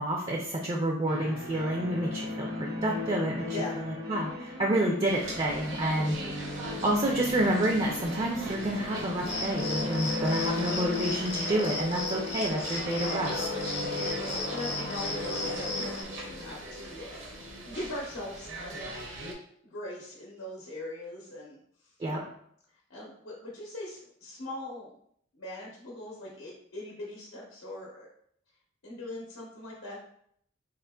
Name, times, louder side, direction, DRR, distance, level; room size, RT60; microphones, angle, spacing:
voice 1, 0.0-6.2 6.8-13.4 22.0-22.2, right 1 dB, 30° right, 0 dB, 0.3 m, -29 dB
sound 1, 1.1-17.8, left 3 dB, 85° right, 1.1 m, -37 dB
sound 2, 5.0-19.3, right 2 dB, 70° right, 0.7 m, -41 dB
Cricket, 9.2-16.0, left 2 dB, 35° left, 0.4 m, -36 dB
voice 2, 14.0-19.1 19.6-21.6 22.9-24.9 25.3-28.1 28.8-30.0, left 1 dB, 85° left, -5 dB, 0.8 m, -41 dB
3.6 x 2.8 x 2.2 m, 0.68 s
head